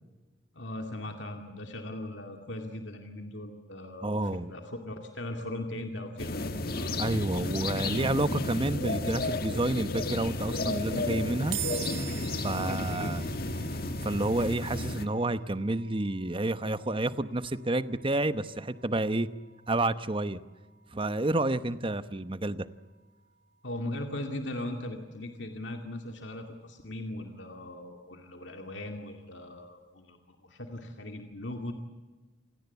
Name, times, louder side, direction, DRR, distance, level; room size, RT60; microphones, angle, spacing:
voice 1, 0.5-6.4 12.4-13.2 23.6-31.7, left 1 dB, 65° left, 4 dB, 2.4 m, -39 dB
voice 2, 4.0-4.5 7.0-11.6 12.4-13.2 14.0-19.3 19.7-20.4 20.9-22.7, right 2 dB, 25° right, 13 dB, 0.9 m, -29 dB
sound 1, 6.2-15.0, left 2 dB, 50° left, 1.8 m, -32 dB
sound 2, 11.5-24.9, right 12 dB, 70° right, 2.2 m, -46 dB
28.5 x 18.0 x 8.2 m, 1.3 s
head